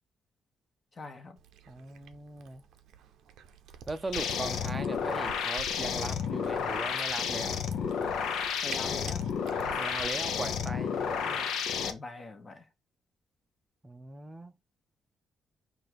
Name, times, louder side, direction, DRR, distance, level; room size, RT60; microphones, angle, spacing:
voice 1, 0.9-1.4 8.6-9.3 11.8-12.7, left 3 dB, 35° left, 1.1 m, -43 dB
Cat, 1.4-10.4, right 8 dB, 80° right, 0.6 m, -49 dB
voice 2, 1.7-2.6 3.9-7.6 9.8-11.5 13.8-14.5, right 2 dB, 20° right, 0.5 m, -39 dB
sound 1, 4.1-11.9, left 7 dB, 80° left, 0.6 m, -31 dB
4.5 x 2.5 x 4.6 m
cardioid pair, 90°, 0 cm